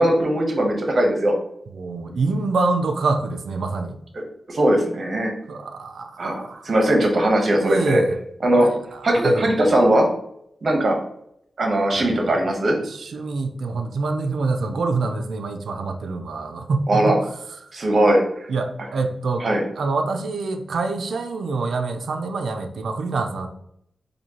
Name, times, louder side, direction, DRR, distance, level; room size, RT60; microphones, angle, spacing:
voice 1, 0.0-1.3 4.5-5.3 6.2-8.0 8.4-8.7 9.0-10.1 10.6-11.0 11.6-12.8 16.9-17.2 17.7-18.4 19.4-19.6, right 1 dB, 55° right, 1 dB, 0.9 m, -19 dB
voice 2, 1.7-4.0 5.5-6.7 7.6-8.2 8.5-9.5 12.0-12.3 12.8-17.2 18.5-19.5 19.8-23.5, right 3 dB, 85° right, 6 dB, 0.3 m, -26 dB
4.2 x 2.6 x 2.8 m, 0.73 s
wide cardioid pair, 80°, 0 cm